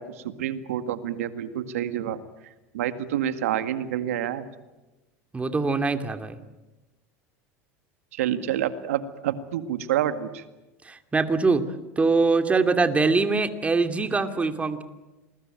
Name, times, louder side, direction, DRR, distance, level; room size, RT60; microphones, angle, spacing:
voice 1, 0.0-2.2 2.7-4.5 8.1-10.4, right 10 dB, 80° right, 10 dB, 2.0 m, -28 dB
voice 2, 5.3-6.4 10.8-11.6 12.0-14.8, right 4 dB, 15° right, 7 dB, 2.7 m, -23 dB
27.5 x 21.5 x 9.1 m, 1.1 s
hypercardioid pair, 95°, 8 cm